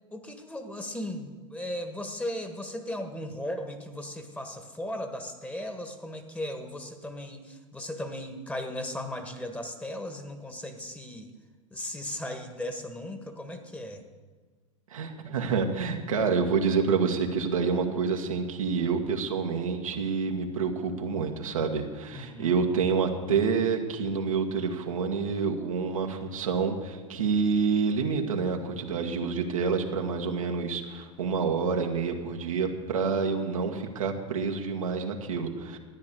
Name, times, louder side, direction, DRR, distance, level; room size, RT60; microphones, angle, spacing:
voice 1, 0.1-11.3 11.7-14.0 22.1-22.6, left 1 dB, 10° left, 6 dB, 1.6 m, -37 dB
voice 2, 14.9-35.8, right 5 dB, 90° right, 2 dB, 1.6 m, -28 dB
13.5 x 9.6 x 6.9 m, 1.4 s
hypercardioid pair, 100°, 17 cm